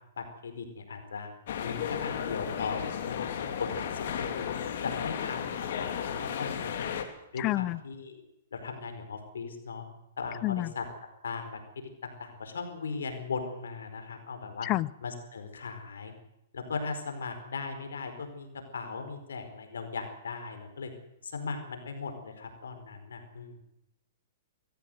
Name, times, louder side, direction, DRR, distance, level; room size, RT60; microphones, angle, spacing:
voice 1, 0.2-1.3 1.6-4.5 4.8-6.9 7.3-8.2 8.5-9.8 10.2-10.9 11.2-14.7 15.0-16.2 16.5-18.5 18.7-20.9 21.2-23.6, left 4 dB, 80° left, 7 dB, 4.6 m, -38 dB
sound 1, 1.5-7.0, left 8 dB, 65° left, 3.3 m, -34 dB
voice 2, 7.4-7.8 10.4-10.7 14.6-14.9, left 18 dB, 35° left, 22 dB, 0.7 m, -28 dB
23.5 x 15.5 x 8.0 m, 0.86 s
hypercardioid pair, 125°, 0 cm